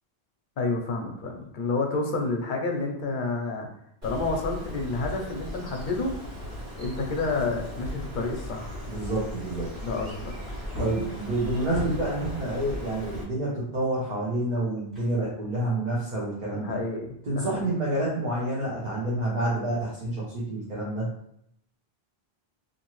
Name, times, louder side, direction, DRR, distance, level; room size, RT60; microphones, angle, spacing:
voice 1, 0.6-3.7 4.0-6.2 6.8-8.8 9.8-10.3 16.5-17.6, left 3 dB, 60° left, 2 dB, 0.6 m, -29 dB
Bird, 4.0-13.2, equal, 70° right, 1.4 m, -38 dB
voice 2, 8.9-9.7 10.8-16.8 17.3-21.1, right 1 dB, 50° right, -7 dB, 0.9 m, -28 dB
Wood, 10.4-12.3 14.9-15.7 16.1-16.2, left 1 dB, ahead, 1.2 m, -38 dB
2.7 x 2.6 x 2.9 m, 0.72 s
omnidirectional pair, 1.0 m